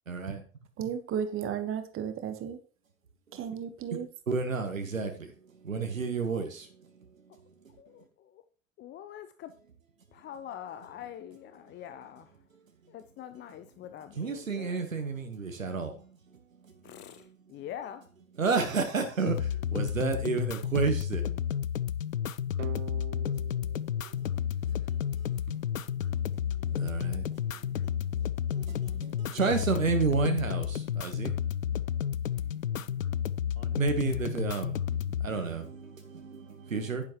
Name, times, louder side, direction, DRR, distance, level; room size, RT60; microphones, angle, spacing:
voice 1, 0.1-0.4 4.3-5.3 5.6-6.7 14.1-16.0 16.6-17.3 18.4-21.4 24.9-25.0 25.3-25.6 26.4-31.3 33.6-37.0, right 4 dB, 80° right, 1.3 m, -32 dB
voice 2, 0.8-2.6 3.3-4.1, right 8 dB, 35° right, 1.3 m, -34 dB
voice 3, 8.8-9.5 10.1-12.3 12.9-14.8 16.8-18.0, left 10 dB, 30° left, 0.7 m, -44 dB
sound 1, 19.3-35.3, left 9 dB, 85° left, 0.5 m, -31 dB
sound 2, 22.6-25.4, right 12 dB, 65° right, 1.1 m, -46 dB
10.5 x 10.0 x 3.0 m
figure-of-eight pair, 80°, 39 cm